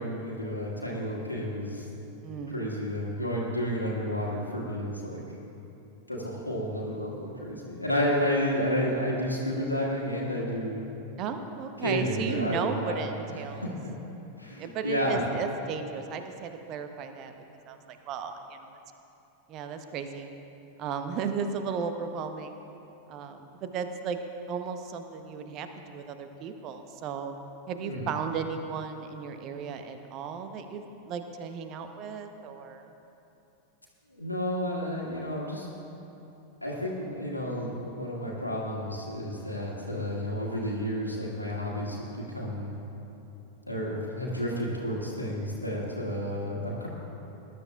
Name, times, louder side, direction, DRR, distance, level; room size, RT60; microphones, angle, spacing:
voice 1, 0.0-1.9 2.5-5.2 6.1-10.8 11.8-13.0 13.5-13.7 14.4-15.2 27.8-28.1 34.1-35.7 36.6-42.1 42.3-42.7 43.7-46.9, equal, 85° left, -4 dB, 1.7 m, -31 dB
voice 2, 2.2-2.7 11.2-13.7 14.6-17.3 17.7-18.8 19.5-20.3 20.8-22.6 23.1-24.2 24.5-27.3 27.7-32.8, right 6 dB, 35° right, 7 dB, 0.9 m, -35 dB
20.0 x 12.0 x 2.4 m, 2.9 s
figure-of-eight pair, 90°, 0 cm